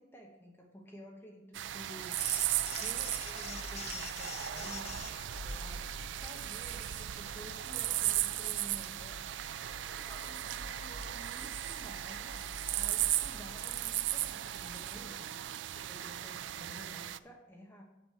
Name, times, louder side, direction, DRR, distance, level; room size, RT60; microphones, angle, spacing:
voice 1, 0.0-5.9 6.2-9.2 9.9-12.4 12.7-15.4 15.7-17.8, equal, 15° left, 0 dB, 1.1 m, -52 dB
sound 1, 1.5-17.2, right 13 dB, 70° right, 0.3 m, -36 dB
sound 2, 2.2-15.0, left 3 dB, 35° left, 0.7 m, -47 dB
sound 3, 2.2-7.9, right 1 dB, 35° right, 1.5 m, -58 dB
6.2 x 6.1 x 7.2 m, 0.92 s
head